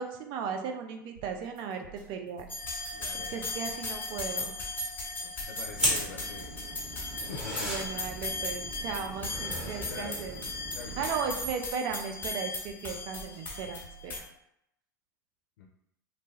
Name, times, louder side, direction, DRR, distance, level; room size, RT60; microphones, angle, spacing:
voice 1, 0.0-2.5 3.3-4.5 7.6-10.4 11.0-14.3, right 6 dB, 50° right, 4 dB, 0.5 m, -36 dB
sound 1, 1.2-14.1, right 4 dB, 70° right, 1.2 m, -53 dB
sound 2, 2.5-14.2, left 3 dB, 20° left, 1.0 m, -37 dB
voice 2, 2.9-3.5 5.2-6.6 7.2-7.7 9.9-10.2 10.7-11.1 15.6-15.7, left 5 dB, 75° left, 0 dB, 0.4 m, -44 dB
sound 3, 5.7-11.5, equal, 10° right, 1.3 m, -36 dB
2.6 x 2.2 x 3.0 m, 0.79 s
hypercardioid pair, 85°, 11 cm